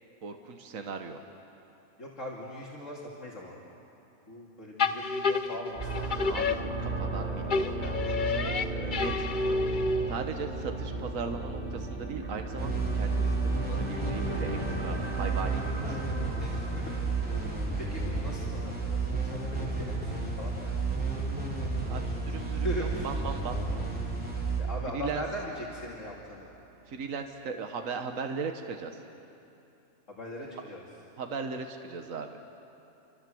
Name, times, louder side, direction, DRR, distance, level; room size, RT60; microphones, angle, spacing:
voice 1, 0.2-1.2 6.3-9.8 10.1-16.0 21.9-23.6 24.9-25.2 26.9-28.9 31.2-32.4, right 5 dB, 70° right, 5 dB, 1.6 m, -38 dB
voice 2, 2.0-3.6 4.3-6.2 8.7-8.9 15.2-15.3 15.8-17.1 17.3-17.5 17.8-20.7 22.5-23.1 24.6-26.5 30.1-30.8, left 1 dB, 65° left, -4 dB, 3.1 m, -40 dB
sound 1, 4.8-7.2 7.5-10.3, left 4 dB, 40° left, 0.9 m, -30 dB
sound 2, 5.7-17.7, right 2 dB, 40° right, 3.5 m, -36 dB
sound 3, 12.6-25.9, right 3 dB, 5° right, 4.2 m, -32 dB
28.5 x 25.5 x 7.8 m, 2.8 s
omnidirectional pair, 1.4 m